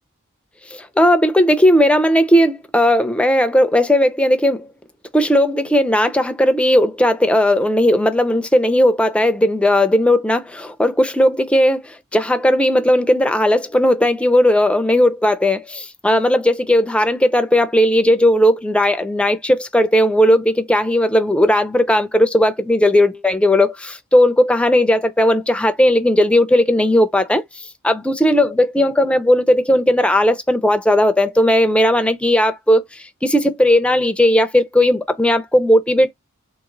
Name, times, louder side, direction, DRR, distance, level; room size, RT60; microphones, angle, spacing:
voice 1, 0.7-4.7 5.1-36.1, left 1 dB, 5° left, 0.4 m, -16 dB
3.0 x 2.8 x 3.8 m
head